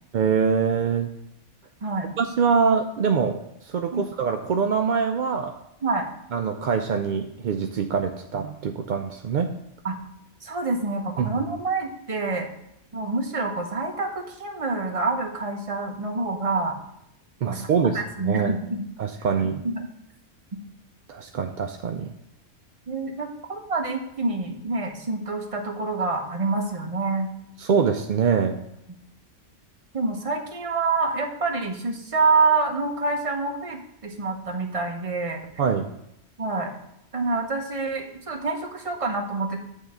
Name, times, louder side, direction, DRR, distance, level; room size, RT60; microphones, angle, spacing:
voice 1, 0.1-1.1 2.2-3.4 3.7-5.5 6.3-9.5 11.2-11.3 17.4-18.0 18.3-18.5 19.0-19.6 21.1-22.1 27.6-28.6 35.6-35.9, right 6 dB, 65° right, 5 dB, 0.5 m, -24 dB
voice 2, 1.8-2.1 3.9-4.1 5.8-6.1 9.8-10.0 10.4-12.5 12.9-16.8 17.5-17.6 17.9-18.9 19.6-19.9 22.9-27.3 29.9-35.4 36.4-36.7 37.1-39.6, right 3 dB, 30° right, 3 dB, 0.9 m, -27 dB
8.5 x 3.5 x 6.5 m, 0.78 s
omnidirectional pair, 1.3 m